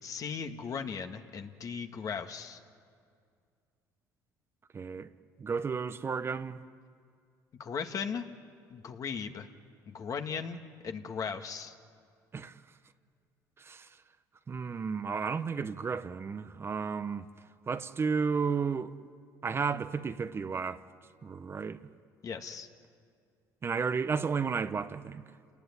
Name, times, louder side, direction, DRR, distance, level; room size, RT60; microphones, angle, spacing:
voice 1, 0.0-2.6 7.6-8.3 8.7-9.5 9.9-11.7 22.2-22.7, left 6 dB, 50° left, 1.8 m, -37 dB
voice 2, 4.7-5.1 5.4-6.6 12.3-12.5 13.6-13.9 14.5-17.3 17.7-18.9 19.4-20.8 21.2-21.8 23.6-25.3, right 5 dB, 30° right, 1.0 m, -33 dB
29.0 x 19.5 x 9.8 m
supercardioid pair, 85°, 8 cm